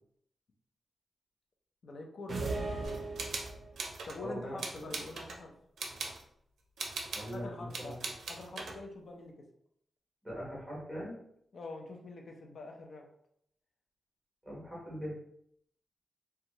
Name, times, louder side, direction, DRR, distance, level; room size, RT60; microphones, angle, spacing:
voice 1, 1.8-3.1 4.0-5.5 7.3-8.0 8.3-9.3 11.5-13.1, left 2 dB, 50° left, 2 dB, 0.5 m, -45 dB
sound 1, 2.3-3.8, right 3 dB, 40° right, 0.5 m, -37 dB
sound 2, 2.8-4.2 4.6-5.4 5.8-6.2 6.8-7.4 7.7-8.8, right 3 dB, 90° right, 0.4 m, -40 dB
voice 2, 4.2-5.0 7.1-8.1 10.2-11.2 14.4-15.2, equal, ahead, -5 dB, 1.1 m, -41 dB
2.7 x 2.2 x 2.9 m, 0.71 s
wide cardioid pair, 175°, 0 cm